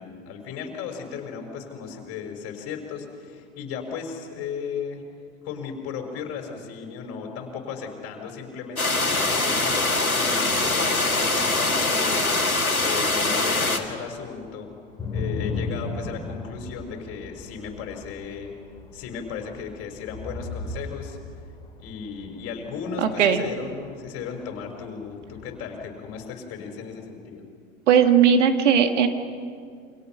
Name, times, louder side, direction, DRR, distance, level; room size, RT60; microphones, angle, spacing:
voice 1, 0.0-5.0 5.4-14.7 15.1-18.5 18.9-21.2 21.8-27.4, left 6 dB, 35° left, 3 dB, 5.0 m, -35 dB
sound 1, 8.8-13.8, left 2 dB, 85° left, 2.1 m, -23 dB
sound 2, 14.0-26.2, left 3 dB, 10° left, 2.8 m, -37 dB
voice 2, 23.0-23.4 27.9-29.1, right 7 dB, 60° right, 7 dB, 2.0 m, -18 dB
28.5 x 26.0 x 5.9 m, 2.2 s
figure-of-eight pair, 95°, 41 cm